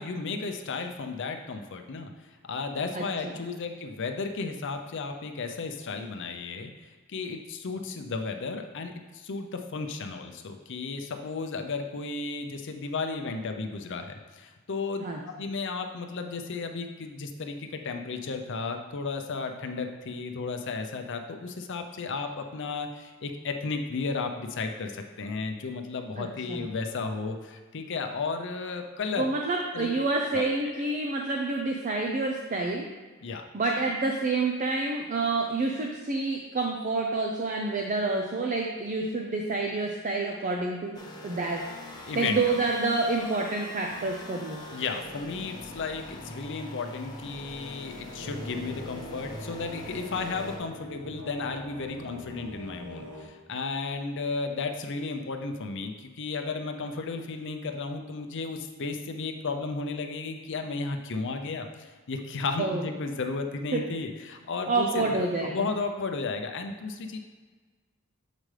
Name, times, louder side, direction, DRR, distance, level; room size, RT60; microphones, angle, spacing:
voice 1, 0.0-2.1 2.5-6.7 7.1-15.1 15.4-29.3 29.7-29.9 30.3-30.8 33.2-33.4 42.1-42.6 44.7-67.2, left 4 dB, 60° left, 6 dB, 0.6 m, -34 dB
voice 2, 26.2-26.7 29.2-32.9 33.5-41.6 42.2-44.6 62.6-62.9 63.7-63.8 64.6-65.7, right 3 dB, 35° right, 1 dB, 0.5 m, -28 dB
sound 1, 40.9-50.6, left 1 dB, 20° left, 0.9 m, -43 dB
sound 2, 48.2-53.3, equal, 70° right, 1.3 m, -42 dB
7.4 x 5.1 x 3.3 m, 1.4 s
head